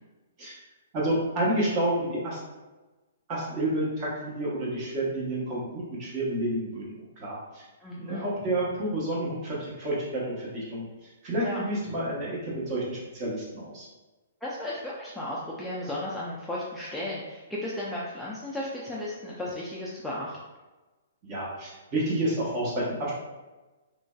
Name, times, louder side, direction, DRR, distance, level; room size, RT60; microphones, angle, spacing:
voice 1, 0.9-2.4 3.3-7.6 8.0-13.9 21.2-23.1, right 1 dB, 30° right, -6 dB, 1.0 m, -30 dB
voice 2, 7.8-8.3 11.4-11.6 14.4-20.4, left 1 dB, 5° left, -8 dB, 0.4 m, -34 dB
3.0 x 2.5 x 2.3 m, 1.2 s
hypercardioid pair, 150°, 0 cm